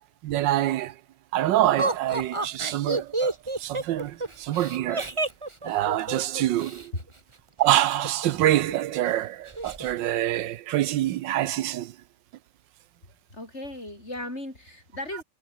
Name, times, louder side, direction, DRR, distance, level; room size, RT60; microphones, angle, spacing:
voice 1, 0.2-0.9 1.3-5.1 5.6-6.9 7.6-11.9, right 13 dB, 85° right, 1.4 m, -25 dB
Laughter, 1.8-6.8 7.9-8.7 9.0-9.1 9.5-9.9, right 2 dB, 15° right, 1.6 m, -30 dB
voice 2, 13.3-15.2, left 1 dB, 35° left, 7.8 m, -36 dB
omnidirectional pair, 2.0 m